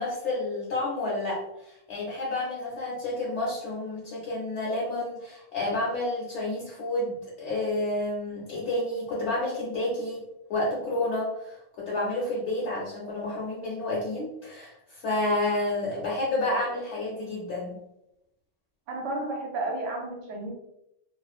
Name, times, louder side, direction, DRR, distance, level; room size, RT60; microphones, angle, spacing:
voice 1, 0.0-10.2 10.5-17.7, left 2 dB, 70° left, -4 dB, 0.9 m, -30 dB
voice 2, 18.9-20.5, right 2 dB, 80° right, 1 dB, 0.9 m, -32 dB
2.5 x 2.3 x 2.3 m, 0.83 s
omnidirectional pair, 1.3 m